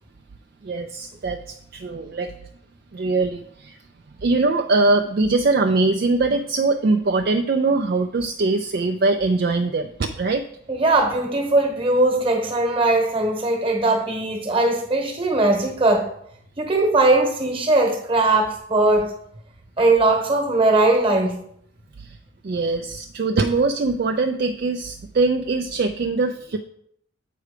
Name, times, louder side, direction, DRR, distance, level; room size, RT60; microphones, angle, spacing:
voice 1, 0.6-2.3 2.9-3.8 4.2-10.4 22.0-22.2 22.4-26.6, right 3 dB, 45° right, 6 dB, 0.4 m, -22 dB
voice 2, 10.7-16.1 16.6-19.1 19.8-21.4, right 2 dB, 25° right, 4 dB, 1.2 m, -19 dB
7.6 x 4.7 x 5.0 m, 0.69 s
head